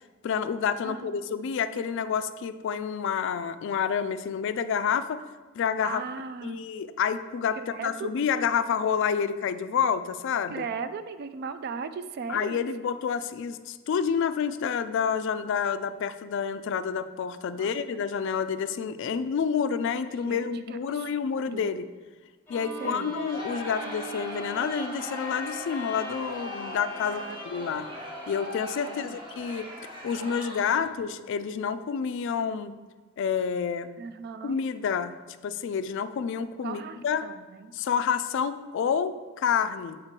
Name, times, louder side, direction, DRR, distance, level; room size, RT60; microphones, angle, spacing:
voice 1, 0.2-5.2 5.5-6.0 6.4-10.6 12.3-21.8 22.5-27.2 27.5-27.9 28.3-29.7 30.0-32.7 33.2-33.9 34.4-37.3 37.7-40.0, left 7 dB, 60° left, 12 dB, 0.3 m, -29 dB
voice 2, 0.8-1.2 5.8-6.7 7.6-8.3 10.5-12.7 17.5-18.0 20.1-21.8 22.8-23.2 27.0-27.4 28.9-29.2 31.1-31.2 34.0-34.6 36.6-37.7, right 5 dB, 50° right, 12 dB, 0.3 m, -38 dB
Bowed string instrument, 22.5-28.7, equal, 10° left, 0.9 m, -41 dB
Crowd, 23.3-31.0, equal, 25° right, 1.0 m, -40 dB
6.4 x 4.5 x 3.7 m, 1.3 s
head